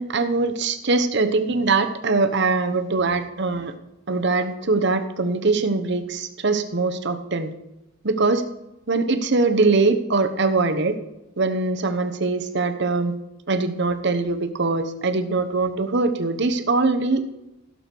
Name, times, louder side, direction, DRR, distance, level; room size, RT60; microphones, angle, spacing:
voice 1, 0.0-3.7 4.1-7.5 8.0-8.4 8.9-10.9 11.4-13.1 13.5-17.2, right 3 dB, 60° right, 8 dB, 1.0 m, -22 dB
16.5 x 6.9 x 4.5 m, 0.93 s
head